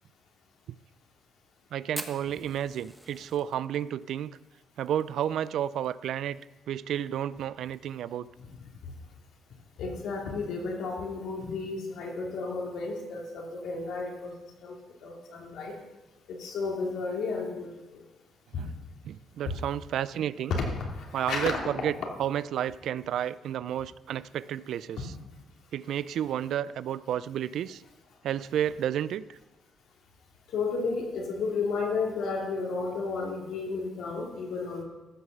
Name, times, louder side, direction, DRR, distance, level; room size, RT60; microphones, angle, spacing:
voice 1, 1.7-4.4 4.8-6.4 6.7-8.3 18.6-18.7 19.0-20.6 21.1-21.9 22.2-25.1 25.7-27.8 28.2-29.2, right 10 dB, 75° right, 18 dB, 0.4 m, -31 dB
Fire, 1.9-6.5 6.7-6.8 7.1-7.2 7.5-8.0 8.5-8.6 9.6-9.8, equal, ahead, 1.2 m, -44 dB
voice 2, 9.8-14.3 14.6-14.7 15.0-15.7 16.3-17.7 18.5-18.6 19.4-19.5 20.5-21.6 30.5-34.8, left 4 dB, 80° left, 0 dB, 2.9 m, -32 dB
14.0 x 6.4 x 6.7 m, 1.1 s
cardioid pair, 90°, 0 cm